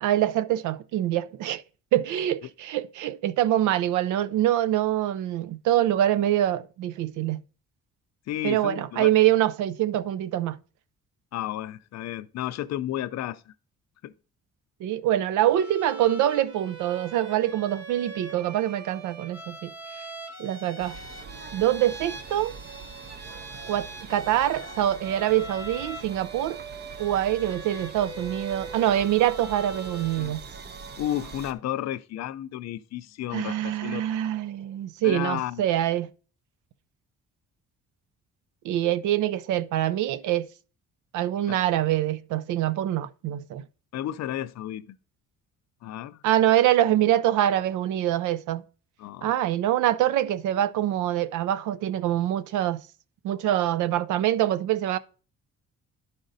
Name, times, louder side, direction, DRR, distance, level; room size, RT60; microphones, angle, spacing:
voice 1, 0.0-1.6 1.9-7.4 8.4-10.6 14.8-19.7 20.4-21.0 21.5-22.5 23.7-26.6 27.0-30.4 33.3-36.1 38.6-40.5 41.1-43.6 46.2-48.6 49.2-52.8 53.2-55.0, right 12 dB, 80° right, 0.5 m, -25 dB
voice 2, 8.3-9.1 11.3-13.5 14.0-14.1 30.2-30.3 31.0-34.0 35.0-35.6 41.5-41.6 43.9-45.0 45.8-46.2 49.0-49.3, left 12 dB, 60° left, 0.5 m, -32 dB
Bowed string instrument, 15.5-30.3, right 3 dB, 55° right, 1.6 m, -41 dB
sound 1, 20.8-31.5, right 5 dB, 35° right, 0.6 m, -43 dB
11.5 x 5.0 x 2.6 m
cardioid pair, 90°, 30 cm